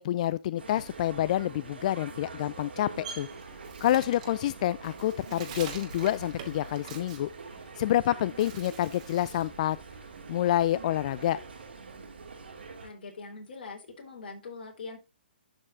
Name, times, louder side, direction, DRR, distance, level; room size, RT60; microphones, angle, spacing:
voice 1, 0.0-3.3 3.8-7.3 7.8-9.8 10.3-11.4, left 13 dB, 40° left, 0.3 m, -28 dB
sound 1, 0.6-12.9, right 4 dB, 75° right, 3.3 m, -45 dB
Bird, 2.5-8.0 8.3-9.6 9.9-11.6, right 6 dB, 40° right, 2.5 m, -46 dB
voice 2, 12.8-15.0, left 4 dB, 60° left, 3.8 m, -42 dB
11.5 x 5.5 x 2.5 m
hypercardioid pair, 145°, 6 cm